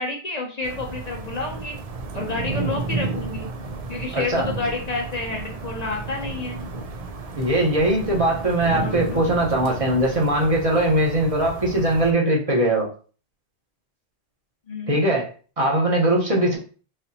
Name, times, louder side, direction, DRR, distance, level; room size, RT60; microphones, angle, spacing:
voice 1, 0.0-1.8 2.1-3.5 3.9-6.6 8.7-9.2 14.7-15.0, left 3 dB, 45° left, 1 dB, 0.7 m, -29 dB
sound 1, 0.6-12.1, right 3 dB, 55° right, 0.4 m, -32 dB
voice 2, 4.1-4.5 7.3-12.9 14.9-15.3 15.6-16.6, right 1 dB, 35° right, -1 dB, 0.9 m, -20 dB
4.2 x 2.9 x 2.7 m, 0.39 s
omnidirectional pair, 1.1 m